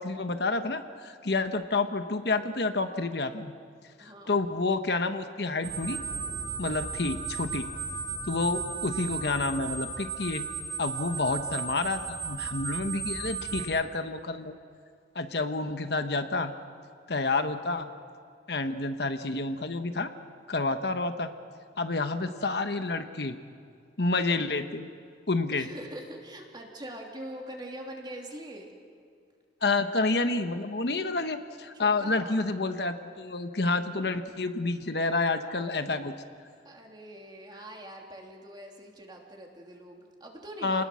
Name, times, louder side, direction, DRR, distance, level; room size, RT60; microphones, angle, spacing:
voice 1, 0.0-3.5 4.0-6.0 6.6-7.6 8.2-10.4 10.8-14.5 15.1-16.5 17.1-17.9 18.5-20.1 20.5-21.3 21.8-23.4 24.0-24.9 25.3-25.7 29.6-36.1 40.6-40.8, left 3 dB, 65° left, 8 dB, 1.1 m, -29 dB
voice 2, 4.0-4.3 25.5-28.7 31.7-32.4 36.6-40.8, right 1 dB, 25° right, 1 dB, 3.0 m, -43 dB
sound 1, 5.6-13.7, right 6 dB, 50° right, 4.2 m, -35 dB
29.5 x 20.0 x 6.3 m, 2.4 s
head